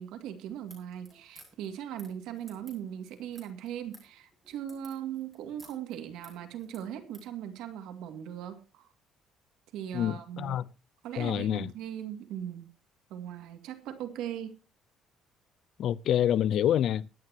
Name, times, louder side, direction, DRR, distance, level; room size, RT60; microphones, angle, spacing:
voice 1, 0.0-8.9 9.7-10.6 11.0-12.7 13.1-14.6, right 10 dB, 85° right, 2.2 m, -39 dB
sound 1, 0.7-7.3, right 2 dB, 20° right, 6.9 m, -56 dB
voice 2, 9.9-10.6 11.2-11.7 15.8-17.1, left 10 dB, 60° left, 0.6 m, -27 dB
22.5 x 9.6 x 2.9 m
cardioid pair, 120°, 0 cm